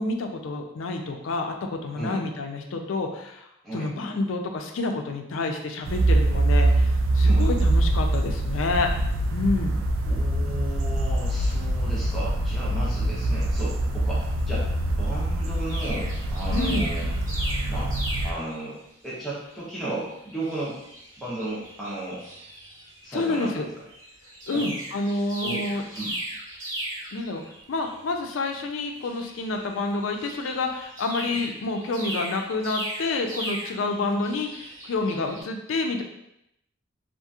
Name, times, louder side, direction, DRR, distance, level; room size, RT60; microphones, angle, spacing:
voice 1, 0.0-3.5 3.7-8.9 9.3-9.7 16.5-16.9 23.1-23.7 24.5-25.8 27.1-27.4 27.7-36.0, left 3 dB, 75° left, 4 dB, 0.4 m, -28 dB
sound 1, 5.8-18.3, right 1 dB, 85° right, 0.3 m, -24 dB
voice 2, 10.0-17.1 17.7-17.9 18.2-18.8 19.0-20.8 21.2-22.2 23.0-23.5 24.5-24.6 25.4-25.6 26.0-26.2 31.3-31.4, right 1 dB, ahead, -9 dB, 0.7 m, -34 dB
sound 2, 15.7-18.7 19.2-19.4 19.7-23.0 23.3-23.5 23.9-35.4, right 1 dB, 40° right, 1.2 m, -37 dB
2.8 x 2.5 x 2.3 m, 0.80 s
head